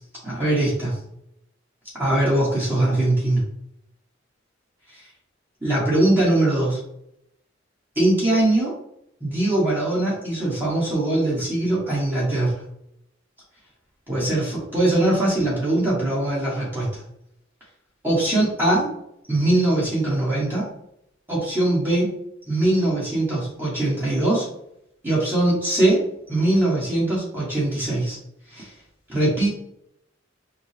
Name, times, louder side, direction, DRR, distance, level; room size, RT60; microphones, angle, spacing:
voice 1, 0.2-1.0 1.9-3.4 5.6-6.8 7.9-8.7 9.2-12.5 14.1-17.0 18.0-18.9 19.3-20.7 21.3-22.1 22.5-24.5 25.0-28.2 28.5-28.7 29.1-29.5, right 1 dB, 10° right, -8 dB, 1.4 m, -21 dB
5.1 x 2.3 x 3.3 m, 0.77 s
head